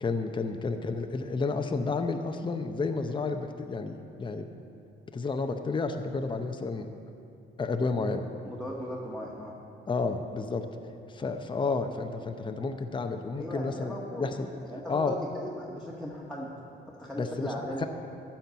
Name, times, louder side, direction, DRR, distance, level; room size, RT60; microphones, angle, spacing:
voice 1, 0.0-4.5 5.1-6.9 7.6-8.3 9.9-10.6 11.1-14.5 14.9-15.2 17.2-17.5 17.8-17.9, left 4 dB, 25° left, 6 dB, 0.7 m, -31 dB
voice 2, 8.4-9.5 13.4-14.3 14.6-15.0 15.3-16.5 16.9-17.9, equal, ahead, -5 dB, 1.4 m, -38 dB
13.0 x 4.5 x 8.2 m, 2.6 s
cardioid pair, 90°, 20 cm